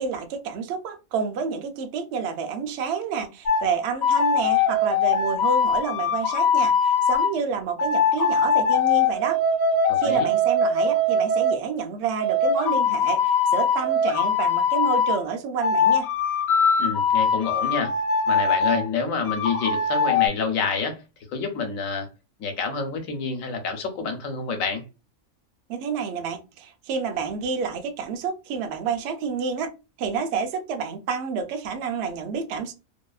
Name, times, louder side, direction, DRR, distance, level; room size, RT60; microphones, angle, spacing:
voice 1, 0.0-9.4 10.0-16.1 25.7-29.7 30.0-32.7, right 5 dB, 65° right, 0.7 m, -29 dB
sound 1, 3.5-3.7 4.0-7.3 7.8-11.5 12.2-15.2 15.6-18.8 19.2-20.3, left 4 dB, 60° left, 0.8 m, -22 dB
voice 2, 9.9-10.3 16.8-17.9 18.3-21.0 21.3-22.1 22.4-24.8, left 5 dB, 80° left, 1.1 m, -28 dB
2.7 x 2.3 x 2.3 m
omnidirectional pair, 1.4 m